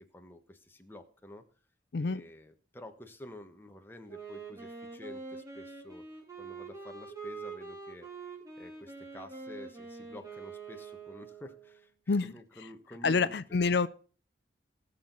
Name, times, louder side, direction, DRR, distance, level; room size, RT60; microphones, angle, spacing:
voice 1, 0.1-1.4 2.0-6.0 6.4-13.4, left 1 dB, 10° left, 5 dB, 1.3 m, -50 dB
Wind instrument woodwind instrument, 4.1-11.8, right 4 dB, 20° right, 3.6 m, -45 dB
voice 2, 13.0-13.9, left 4 dB, 65° left, 15 dB, 0.5 m, -27 dB
19.0 x 6.5 x 4.0 m, 0.39 s
head